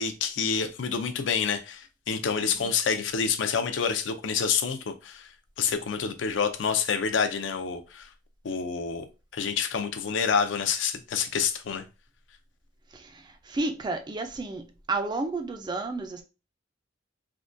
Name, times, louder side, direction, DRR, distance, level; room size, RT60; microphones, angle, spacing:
voice 1, 0.0-5.3 5.6-8.1 8.4-9.1 9.3-11.8, left 6 dB, 65° left, 0.4 m, -28 dB
voice 2, 13.5-14.6 14.9-16.2, right 3 dB, 20° right, 0.3 m, -30 dB
3.5 x 2.2 x 2.5 m
head